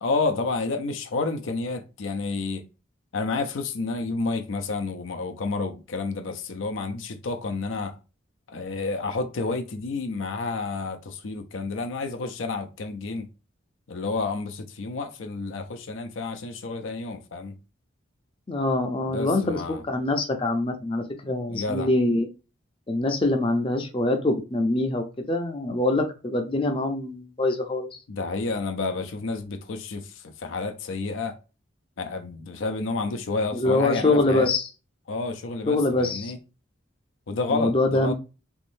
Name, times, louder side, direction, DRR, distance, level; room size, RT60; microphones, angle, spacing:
voice 1, 0.0-2.6 3.1-8.0 8.5-13.3 13.9-17.5 19.0-19.8 21.5-21.9 28.1-31.4 32.0-34.5 35.1-36.4 37.3-38.1, left 3 dB, 80° left, 0.5 m, -30 dB
voice 2, 18.5-19.6 19.9-22.3 22.9-27.9 33.5-34.7 35.7-36.3 37.5-38.1, left 2 dB, 25° left, 0.5 m, -24 dB
3.6 x 3.0 x 2.6 m
head